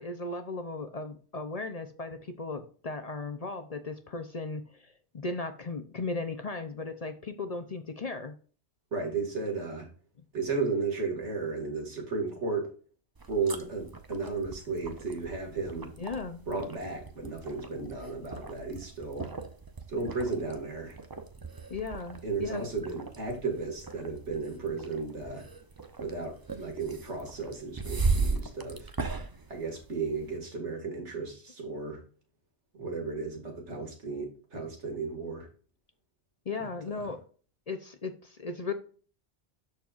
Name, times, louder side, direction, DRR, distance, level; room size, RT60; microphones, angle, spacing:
voice 1, 0.0-8.3 16.0-16.4 21.7-22.7 36.5-37.2 37.7-38.7, left 3 dB, 40° left, 7 dB, 0.7 m, -36 dB
voice 2, 8.9-9.9 10.3-12.7 13.3-15.9 16.5-19.3 19.9-21.0 22.2-25.4 26.0-28.9 29.5-32.0 32.7-35.5 36.6-36.7, right 4 dB, 85° right, 1 dB, 2.4 m, -34 dB
sound 1, 13.1-30.4, right 4 dB, 25° right, 0.6 m, -37 dB
13.0 x 4.4 x 2.5 m, 0.40 s
omnidirectional pair, 1.2 m